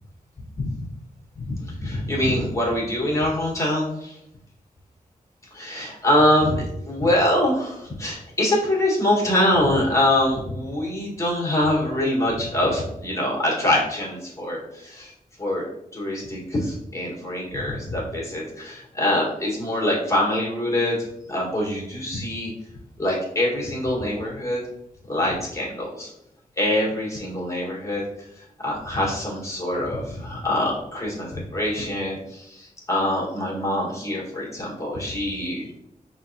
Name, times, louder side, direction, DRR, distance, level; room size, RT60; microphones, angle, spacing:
voice 1, 1.3-4.2 5.5-15.1 15.4-15.6 15.9-22.5 23.0-24.6 25.1-26.1 26.6-28.0 28.6-35.7, left 1 dB, 20° left, -3 dB, 1.4 m, -24 dB
5.6 x 3.0 x 2.7 m, 0.80 s
wide cardioid pair, 135°, 15 cm